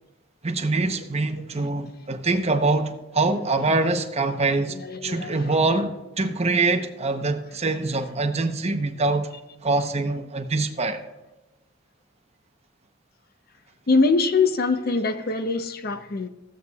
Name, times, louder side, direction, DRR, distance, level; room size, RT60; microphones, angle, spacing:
voice 1, 0.4-9.3 9.6-11.0, right 3 dB, 35° right, 0.9 m, -24 dB
voice 2, 4.7-5.6 13.9-16.3, left 4 dB, 50° left, 0.7 m, -23 dB
16.0 x 8.0 x 2.3 m
head